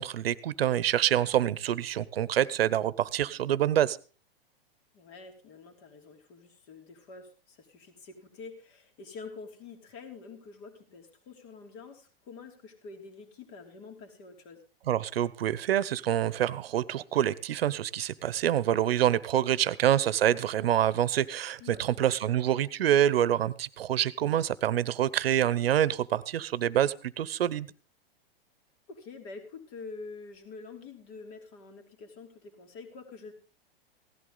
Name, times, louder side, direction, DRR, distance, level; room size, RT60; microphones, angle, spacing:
voice 1, 0.0-4.0 14.9-27.7, right 11 dB, 80° right, 19 dB, 0.9 m, -26 dB
voice 2, 4.9-14.6 21.6-22.1 28.9-33.3, left 4 dB, 45° left, 4 dB, 3.0 m, -47 dB
16.5 x 11.5 x 3.9 m, 0.37 s
hypercardioid pair, 130°, 29 cm